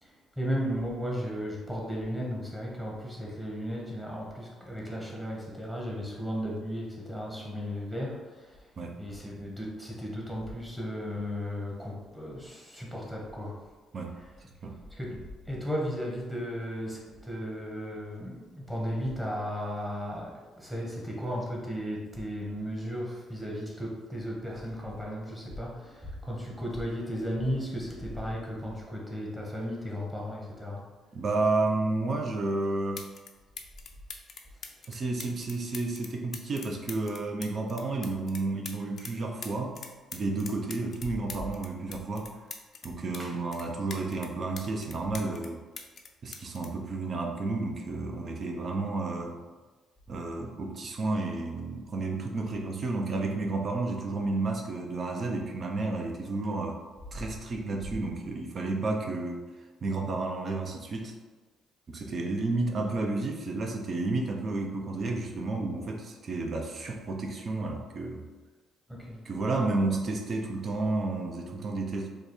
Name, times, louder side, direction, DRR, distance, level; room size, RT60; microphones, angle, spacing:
voice 1, 0.0-13.6 14.2-14.3 14.9-30.9 34.7-34.8 43.2-43.3 68.9-69.2, equal, 5° right, -2 dB, 1.1 m, -35 dB
voice 2, 31.1-33.1 34.9-39.8 40.1-42.3 42.8-45.6 46.2-49.4 50.1-56.8 57.1-59.4 59.8-61.1 61.9-68.2 69.3-72.1, right 3 dB, 50° right, 2 dB, 0.7 m, -31 dB
sound 1, 32.5-32.6 32.9-33.3 33.6-39.1 39.4-43.2 43.5-45.5 45.8-47.6 48.5-48.7, left 5 dB, 55° left, 0.5 m, -43 dB
3.2 x 2.4 x 4.2 m, 1.3 s
supercardioid pair, 70°, 0 cm